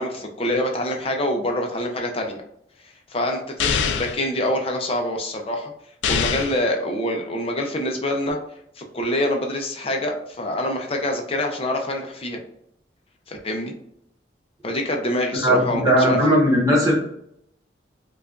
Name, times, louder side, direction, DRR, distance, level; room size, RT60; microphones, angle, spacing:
voice 1, 0.0-2.4 3.1-5.7 6.1-8.4 8.8-12.4 13.3-13.7 14.6-16.2, left 1 dB, 30° left, 2 dB, 0.6 m, -25 dB
sound 1, 3.6-4.2 6.0-6.6, left 6 dB, 80° left, 0.4 m, -23 dB
voice 2, 15.4-16.9, equal, 20° right, -6 dB, 1.3 m, -17 dB
4.7 x 2.4 x 2.5 m, 0.72 s
head